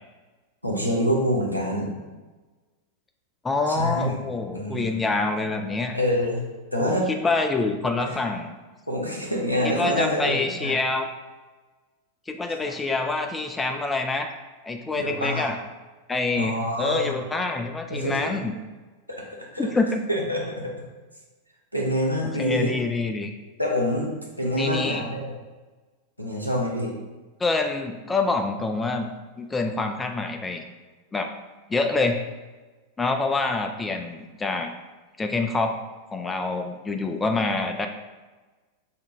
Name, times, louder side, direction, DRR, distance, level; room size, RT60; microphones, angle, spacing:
voice 1, 0.6-1.9 3.7-4.2 4.5-4.9 5.9-6.4 6.7-7.1 8.0-8.1 8.9-10.8 12.6-12.7 14.9-15.5 16.4-17.1 17.9-18.2 19.1-19.7 20.1-20.4 21.7-22.7 23.6-24.1 24.4-25.3 26.2-26.9, equal, 90° left, -1 dB, 0.7 m, -26 dB
voice 2, 3.4-6.0 6.8-8.6 9.6-11.1 12.3-14.4 14.6-15.6 16.1-18.6 19.6-20.0 22.4-23.3 24.6-25.0 27.4-29.1 29.4-30.6 31.1-31.3 31.7-32.2 33.0-34.7 35.2-35.7 36.1-37.9, left 3 dB, 15° left, 5 dB, 0.3 m, -26 dB
5.5 x 2.1 x 3.3 m, 1.3 s
figure-of-eight pair, 90°, 0 cm